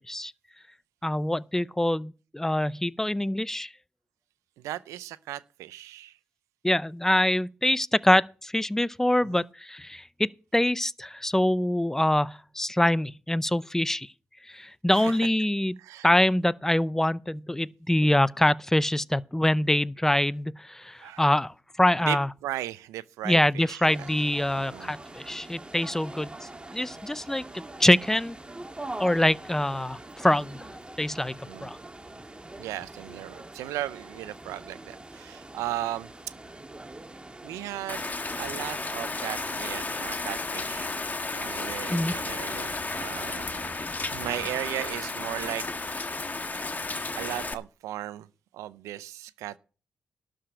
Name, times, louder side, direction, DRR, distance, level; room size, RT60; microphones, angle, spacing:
voice 1, 1.0-3.7 6.6-14.1 14.5-15.7 16.0-22.3 23.2-28.4 29.0-30.7 31.0-31.8 41.9-42.1, left 1 dB, 10° left, 0.5 m, -25 dB
voice 2, 4.6-6.1 9.3-9.4 14.9-15.1 15.8-16.1 21.0-21.2 22.1-24.1 24.6-24.9 31.5-31.7 32.6-36.1 37.4-38.0 38.4-40.9 41.3-43.8 44.1-45.7 45.9-46.0 47.2-48.3 48.5-49.6, right 14 dB, 90° right, 0.5 m, -36 dB
sound 1, 23.8-42.6, right 2 dB, 20° right, 1.7 m, -44 dB
Rain, 37.9-47.5, left 3 dB, 35° left, 1.3 m, -33 dB
12.0 x 5.0 x 8.8 m
supercardioid pair, 45°, 5 cm